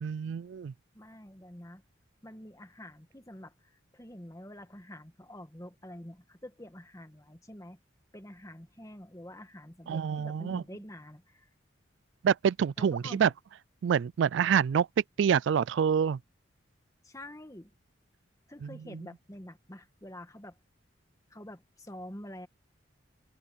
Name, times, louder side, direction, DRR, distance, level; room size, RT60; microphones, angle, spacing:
voice 1, 0.0-0.7 9.9-10.6 12.2-13.3 13.8-14.9 15.2-16.2, right 7 dB, 70° right, 0.3 m, -26 dB
voice 2, 0.9-1.8 2.2-7.8 8.1-11.5 12.8-13.3 17.0-17.7 18.5-20.6 21.3-22.5, left 1 dB, 15° left, 1.7 m, -47 dB
head